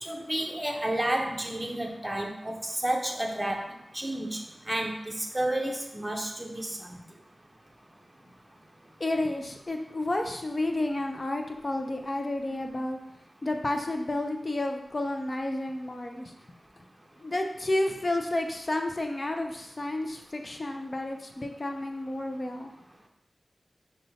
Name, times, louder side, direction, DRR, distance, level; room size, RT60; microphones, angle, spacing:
voice 1, 0.0-3.6 3.9-4.4 4.7-7.0, right 1 dB, 20° right, 2 dB, 0.6 m, -31 dB
voice 2, 9.0-13.0 13.4-16.3 17.2-22.7, left 1 dB, 40° left, 4 dB, 0.4 m, -31 dB
5.3 x 2.1 x 2.7 m, 0.80 s
cardioid pair, 55°, 0 cm